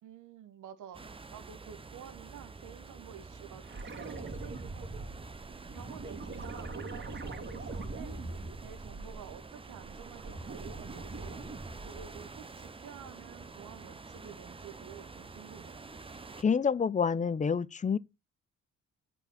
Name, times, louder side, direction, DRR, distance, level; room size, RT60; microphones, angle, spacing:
voice 1, 0.0-5.0 5.7-11.4 11.8-15.8, right 9 dB, 80° right, 1.3 m, -50 dB
sound 1, 0.9-16.4, right 4 dB, 20° right, 0.8 m, -48 dB
sound 2, 3.6-9.4 9.8-12.3 14.8-14.9, right 3 dB, 40° right, 2.1 m, -42 dB
voice 2, 16.4-18.0, left 6 dB, 25° left, 0.6 m, -28 dB
8.1 x 4.4 x 7.2 m
cardioid pair, 90°, 30 cm